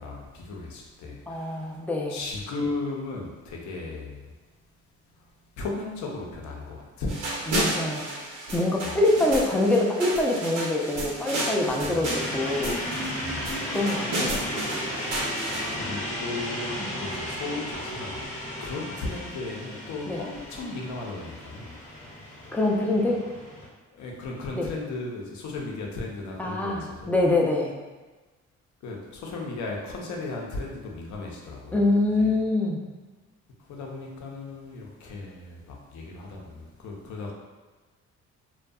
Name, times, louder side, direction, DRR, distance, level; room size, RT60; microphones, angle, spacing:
voice 1, 0.0-1.8 2.1-4.2 5.6-7.2 8.8-9.0 11.8-12.0 13.2-13.5 15.7-18.2 18.6-21.7 23.9-27.1 28.8-31.8 32.2-32.3 33.7-37.3, left 3 dB, 70° left, -1 dB, 0.6 m, -36 dB
voice 2, 1.3-2.2 7.6-8.1 8.5-12.8 13.7-14.5 16.8-16.9 20.1-20.2 22.5-23.3 24.5-24.7 26.4-27.7 31.7-32.8, left 2 dB, 5° left, -1 dB, 0.3 m, -25 dB
sound 1, 7.1-15.7, right 1 dB, 90° right, 0.8 m, -32 dB
sound 2, 12.0-23.7, equal, 25° left, 0.8 m, -34 dB
2.6 x 2.3 x 2.3 m, 1.2 s
cardioid pair, 90°, 30 cm